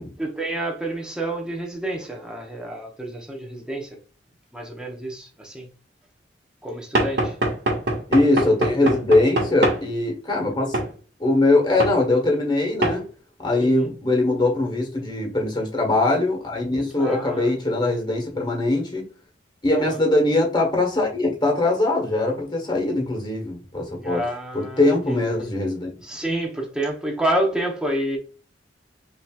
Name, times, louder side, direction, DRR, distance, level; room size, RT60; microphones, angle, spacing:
voice 1, 0.2-4.0 4.5-5.7 6.6-7.4 13.6-13.9 17.0-17.5 19.7-20.0 24.0-25.2 26.0-28.2, right 1 dB, 5° right, 1.0 m, -29 dB
Knock / Wood, 7.0-9.8 10.7-10.9 11.8-12.0 12.8-13.0, right 1 dB, 70° right, 1.7 m, -23 dB
voice 2, 8.1-10.8 11.2-13.1 13.4-19.1 19.6-24.2 24.5-25.9, left 2 dB, 25° left, 1.5 m, -21 dB
5.8 x 3.1 x 2.4 m
head